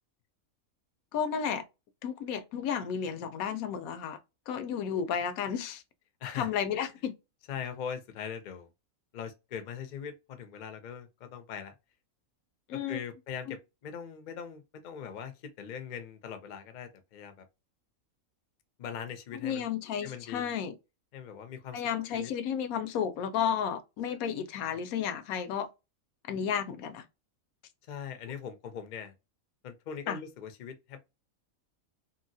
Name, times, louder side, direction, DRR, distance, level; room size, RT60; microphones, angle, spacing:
voice 1, 1.1-1.6 2.0-4.2 4.5-5.8 6.3-7.1 12.7-13.0 19.4-20.7 21.7-25.7 26.3-27.0 30.1-30.2, left 8 dB, 85° left, 1.0 m, -32 dB
voice 2, 7.5-8.7 9.1-11.7 12.7-17.4 18.8-19.7 20.0-20.5 21.1-21.8 22.1-22.3 24.1-24.2 27.9-29.1 29.6-31.0, left 7 dB, 60° left, 0.5 m, -41 dB
2.8 x 2.7 x 2.6 m
omnidirectional pair, 1.5 m